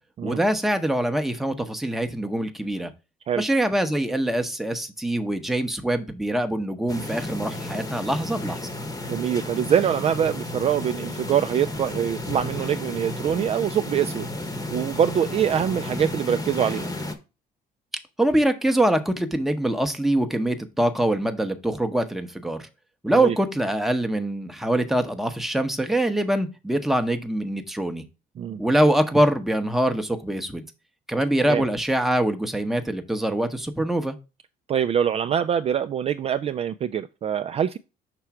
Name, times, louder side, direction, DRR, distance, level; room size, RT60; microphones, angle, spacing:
voice 1, 0.2-2.9 3.4-8.6 18.2-22.7 23.0-28.0 28.6-30.6 31.1-34.2, right 1 dB, ahead, 0.8 m, -24 dB
sound 1, 6.9-17.1, left 2 dB, 20° left, 1.0 m, -33 dB
voice 2, 9.1-14.3 14.7-16.9 23.1-23.4 28.4-28.6 31.5-31.6 34.7-37.8, right 9 dB, 35° right, 0.4 m, -24 dB
5.9 x 3.2 x 5.7 m
cardioid pair, 110°, 17 cm